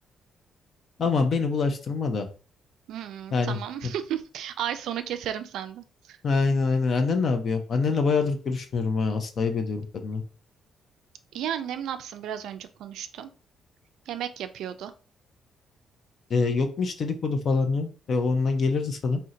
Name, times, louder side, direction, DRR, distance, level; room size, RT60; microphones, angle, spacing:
voice 1, 1.0-2.3 3.3-3.6 6.2-10.2 16.3-19.2, left 4 dB, 55° left, 6 dB, 0.5 m, -25 dB
voice 2, 2.9-6.2 11.3-13.3 14.1-14.9, right 10 dB, 80° right, 9 dB, 0.3 m, -34 dB
2.7 x 2.1 x 3.7 m, 0.37 s
cardioid pair, 90°, 0 cm